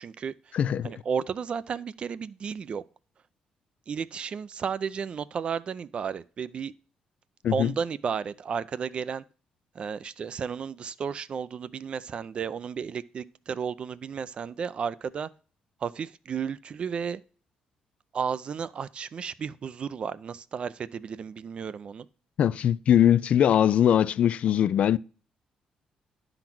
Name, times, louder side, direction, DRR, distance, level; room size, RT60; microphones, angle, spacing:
voice 1, 0.0-0.5 0.8-2.8 3.9-6.7 7.5-9.2 9.7-15.3 15.8-17.2 18.1-22.1, right 6 dB, 50° right, 0.5 m, -33 dB
voice 2, 0.5-0.9 7.4-7.7 22.4-25.0, left 10 dB, 60° left, 0.3 m, -21 dB
10.5 x 4.0 x 6.0 m
cardioid pair, 95°, 2 cm